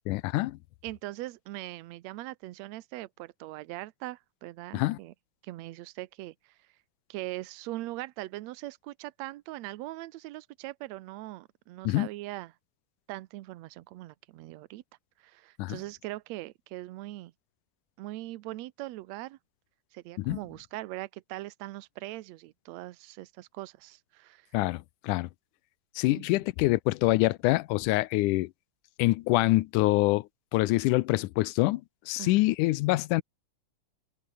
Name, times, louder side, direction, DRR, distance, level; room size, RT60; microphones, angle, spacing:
voice 1, 0.1-0.6 4.7-5.0 11.9-12.1 15.6-15.8 20.2-20.4 24.5-25.3 26.0-28.5 29.0-30.3 30.5-31.8 32.1-33.2, left 19 dB, 90° left, 2.2 m, -25 dB
voice 2, 0.8-5.1 5.4-6.6 7.1-12.5 13.1-14.8 15.2-17.3 18.0-19.4 19.9-24.5 26.1-26.3 32.2-32.3, right 17 dB, 70° right, 1.9 m, -41 dB
omnidirectional pair, 3.5 m